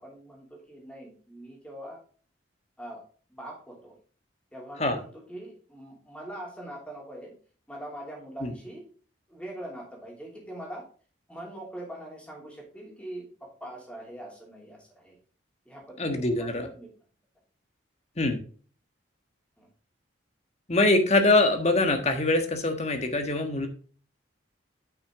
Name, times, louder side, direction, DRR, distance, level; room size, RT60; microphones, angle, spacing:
voice 1, 0.0-2.0 2.8-3.0 3.3-4.0 4.5-7.3 7.7-8.8 9.3-10.8 11.3-15.2 15.6-16.9 19.6-19.7, right 1 dB, 5° left, -2 dB, 3.0 m, -42 dB
voice 2, 16.0-16.7 18.2-18.4 20.7-23.7, left 2 dB, 35° left, 5 dB, 1.4 m, -23 dB
9.1 x 6.3 x 3.8 m, 0.40 s
head